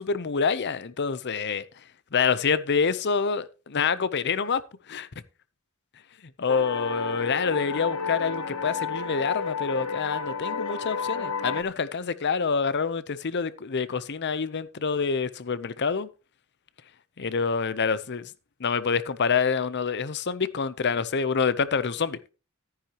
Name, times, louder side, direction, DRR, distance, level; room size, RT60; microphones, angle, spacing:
voice 1, 0.0-1.6 2.1-4.6 4.9-5.1 6.4-16.1 17.2-18.3 18.6-22.2, left 5 dB, 55° left, 0.7 m, -27 dB
sound 1, 6.5-11.6, left 5 dB, 75° left, 1.1 m, -31 dB
13.5 x 9.8 x 2.9 m
head